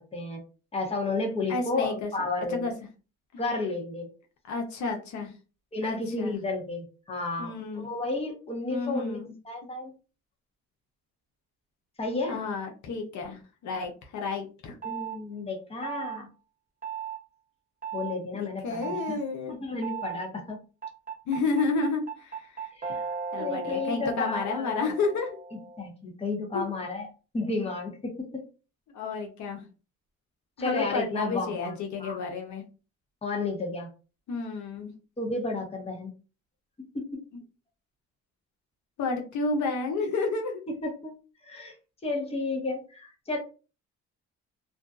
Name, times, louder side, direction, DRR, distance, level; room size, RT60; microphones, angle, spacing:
voice 1, 0.7-2.7 3.4-4.1 5.7-9.2 9.4-9.9 12.0-12.4 14.8-16.3 17.9-19.2 19.5-20.6 22.7-23.0 23.4-24.8 25.8-27.1 27.3-28.3 30.6-32.2 33.2-33.9 35.2-36.1 36.9-37.2 40.8-41.1 41.4-41.7 42.0-43.4, left 3 dB, 20° left, 1 dB, 0.9 m, -32 dB
voice 2, 1.5-2.1 2.5-2.7 4.5-5.3 5.8-6.4 7.4-7.9 8.7-9.3 12.3-14.7 18.3-19.6 21.3-22.7 23.3-25.4 26.5-26.6 28.9-29.6 30.6-32.6 34.3-34.9 39.0-40.6, left 4 dB, 70° left, 3 dB, 0.7 m, -31 dB
sound 1, 14.8-15.2 15.8-16.2 16.8-17.2 17.8-18.1 18.8-19.2 19.8-20.2 20.8-25.9, right 6 dB, 25° right, 0.7 m, -36 dB
2.5 x 2.2 x 2.3 m, 0.34 s
cardioid pair, 90°, 30 cm